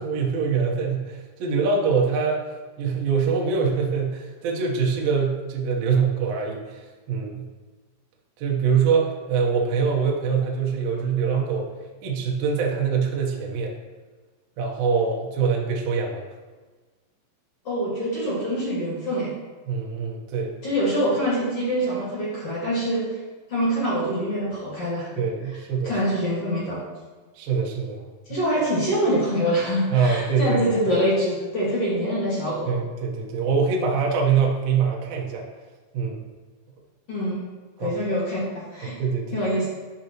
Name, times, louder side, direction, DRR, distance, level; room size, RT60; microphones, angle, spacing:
voice 1, 0.0-2.4 2.8-7.5 8.4-11.7 12.0-13.7 14.6-16.2 19.7-20.5 25.2-25.9 27.4-28.0 28.3-28.4 29.9-30.6 32.7-35.4 35.9-36.2 37.8-37.9 38.8-39.4, right 5 dB, 65° right, -1 dB, 2.5 m, -24 dB
voice 2, 17.6-19.3 20.6-23.1 23.5-25.1 25.8-26.8 28.3-32.7 37.1-37.4 37.8-38.9 39.3-39.7, equal, 40° left, -8 dB, 2.7 m, -25 dB
13.5 x 5.2 x 3.1 m, 1.3 s
omnidirectional pair, 5.4 m